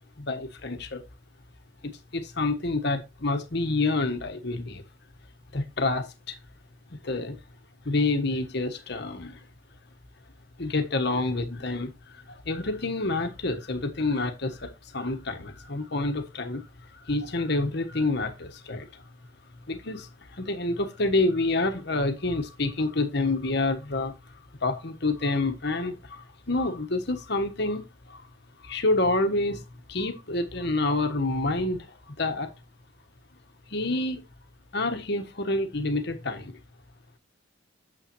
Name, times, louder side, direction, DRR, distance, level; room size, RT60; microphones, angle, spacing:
voice 1, 0.2-1.0 1.8-4.8 5.5-6.4 6.9-7.4 7.8-9.4 10.6-19.0 19.7-24.1 24.6-28.2 28.6-32.5 33.7-34.2 34.7-36.5, left 2 dB, 60° left, 1.4 m, -28 dB
9.0 x 7.1 x 3.1 m
head